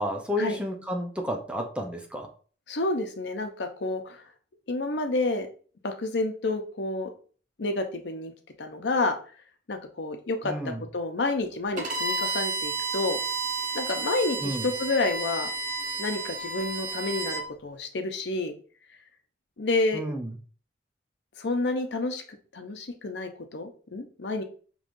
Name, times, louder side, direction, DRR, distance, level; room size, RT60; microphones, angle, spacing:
voice 1, 0.0-2.3 10.4-10.8 14.4-14.7 19.9-20.3, equal, 5° right, 2 dB, 0.6 m, -31 dB
voice 2, 2.7-4.2 4.7-5.5 5.8-7.1 7.6-8.3 8.6-9.2 9.7-13.2 13.7-15.5 16.0-18.5 19.6-20.0 21.4-22.2 22.5-24.4, left 2 dB, 70° left, 6 dB, 0.7 m, -29 dB
Bowed string instrument, 11.8-17.4, right 3 dB, 45° right, 0.8 m, -31 dB
5.3 x 3.1 x 2.5 m, 0.41 s
head